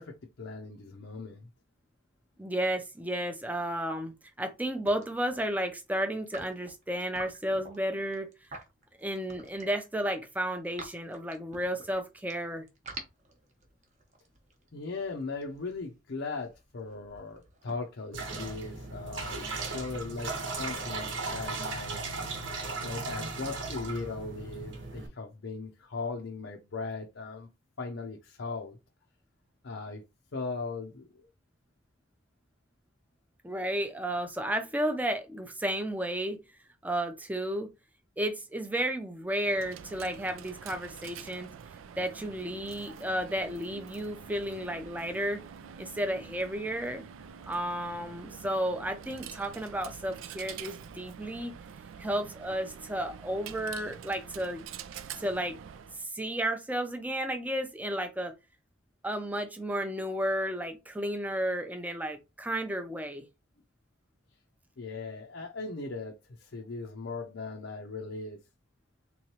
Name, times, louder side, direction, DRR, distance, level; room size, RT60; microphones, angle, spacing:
voice 1, 0.0-1.5 14.7-19.5 19.7-22.0 22.8-27.5 27.8-28.8 29.6-30.0 30.3-31.1 64.8-68.4, left 3 dB, 70° left, 0.6 m, -38 dB
voice 2, 2.4-8.3 9.0-12.7 33.4-36.4 36.8-37.7 38.2-41.5 42.0-45.4 45.8-47.0 47.5-51.5 52.0-54.6 55.2-55.6 55.9-58.3 59.0-63.3, right 1 dB, 10° right, 0.5 m, -32 dB
sound 1, 4.6-4.7 4.9-5.5 6.2-9.9 10.3-12.3 12.7-18.8, right 3 dB, 35° right, 0.8 m, -48 dB
sound 2, 18.1-25.1, right 3 dB, 75° right, 1.0 m, -37 dB
Coin (dropping), 39.4-56.1, right 7 dB, 90° right, 0.4 m, -46 dB
3.6 x 3.0 x 2.9 m
head